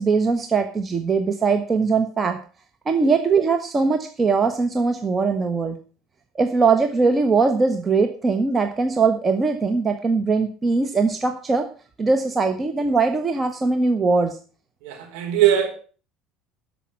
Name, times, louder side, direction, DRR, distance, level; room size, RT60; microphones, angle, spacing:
voice 1, 0.0-2.4 2.9-5.8 6.3-11.7 12.0-14.4, right 4 dB, 30° right, 6 dB, 1.3 m, -21 dB
voice 2, 14.8-15.7, right 11 dB, 65° right, 1 dB, 4.4 m, -20 dB
13.0 x 5.9 x 7.3 m, 0.39 s
hypercardioid pair, 65°, 0 cm